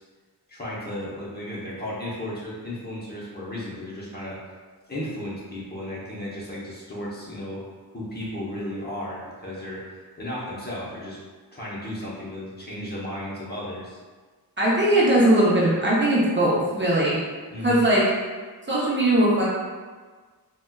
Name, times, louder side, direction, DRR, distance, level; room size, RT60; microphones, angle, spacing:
voice 1, 0.5-4.4 4.9-7.6 7.9-11.2 11.5-14.0 17.5-17.8, left 1 dB, 25° left, -7 dB, 0.7 m, -34 dB
voice 2, 14.6-17.2 17.6-18.1 18.7-19.5, right 1 dB, 30° right, -7 dB, 0.6 m, -20 dB
4.0 x 2.2 x 2.2 m, 1.4 s
wide cardioid pair, 115°, 38 cm